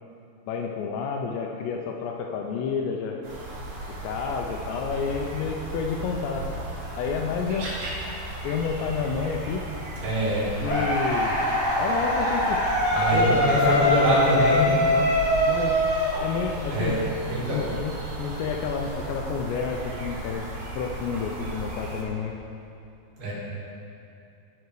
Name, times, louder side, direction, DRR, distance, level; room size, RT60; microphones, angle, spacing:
voice 1, 0.5-3.2 4.0-6.6 6.9-7.7 8.4-9.7 10.6-11.4 11.8-12.6 13.1-15.1 15.5-15.7 16.2-17.0 17.5-17.9 18.2-20.5 20.8-22.3, left 5 dB, 80° left, 2 dB, 2.7 m, -30 dB
sound 1, 3.2-22.0, right 1 dB, 85° right, 4.5 m, -36 dB
voice 2, 10.0-10.5 12.9-14.7 16.7-17.0 17.3-17.6 23.2-23.3, equal, 60° right, -8 dB, 4.5 m, -24 dB
sound 2, 10.6-16.7, left 1 dB, 35° left, 1.3 m, -23 dB
15.0 x 5.9 x 4.7 m, 2.6 s
omnidirectional pair, 5.3 m